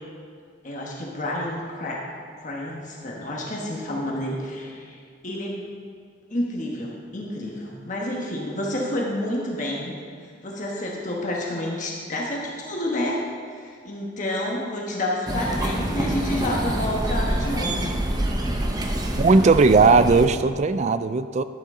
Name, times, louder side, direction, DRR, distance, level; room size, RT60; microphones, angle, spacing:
voice 1, 0.6-2.0 2.4-5.0 5.2-5.7 6.3-9.9 10.4-13.2 13.5-17.9, left 1 dB, 40° left, -2 dB, 1.2 m, -29 dB
sound 1, 15.3-20.3, right 1 dB, 20° right, 0.7 m, -26 dB
voice 2, 19.2-21.4, right 4 dB, 35° right, 12 dB, 0.3 m, -17 dB
11.5 x 9.7 x 3.7 m, 2.2 s
head